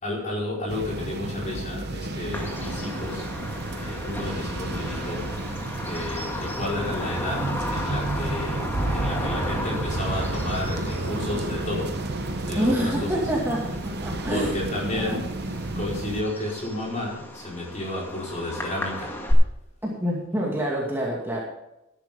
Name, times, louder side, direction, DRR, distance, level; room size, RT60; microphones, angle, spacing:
voice 1, 0.0-3.3 3.8-5.4 5.8-13.3 14.3-15.4 15.7-19.1, left 1 dB, 35° left, -3 dB, 4.7 m, -32 dB
sound 1, 0.7-16.2, right 2 dB, 50° right, 0.8 m, -31 dB
Bird vocalization bird call bird song, 2.3-19.3, left 1 dB, 10° left, 1.8 m, -35 dB
voice 2, 12.5-14.5 14.9-15.2 19.8-21.4, equal, 10° right, -4 dB, 2.3 m, -27 dB
13.5 x 11.0 x 3.8 m, 0.88 s
head